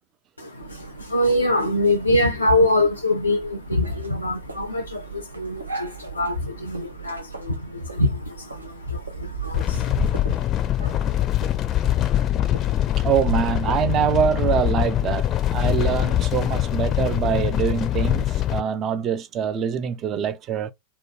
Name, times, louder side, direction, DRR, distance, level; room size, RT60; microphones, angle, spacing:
voice 1, 0.4-10.4, left 1 dB, 90° left, 0.4 m, -24 dB
sound 1, 0.6-13.7, right 5 dB, 80° right, 0.7 m, -38 dB
sound 2, 9.5-18.6, left 12 dB, 30° left, 0.4 m, -23 dB
voice 2, 13.0-20.7, right 8 dB, 30° right, 0.4 m, -24 dB
3.0 x 2.2 x 2.9 m
figure-of-eight pair, 90°, 0 cm